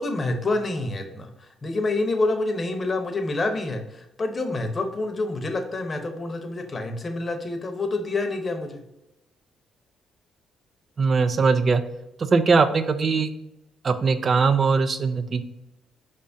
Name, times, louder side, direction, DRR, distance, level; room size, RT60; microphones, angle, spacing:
voice 1, 0.0-8.8, left 2 dB, 35° left, 5 dB, 0.8 m, -27 dB
voice 2, 11.0-11.8 12.3-13.3 13.8-15.4, right 4 dB, 45° right, 10 dB, 0.5 m, -20 dB
5.1 x 3.4 x 2.7 m, 0.91 s
cardioid pair, 90°, 0 cm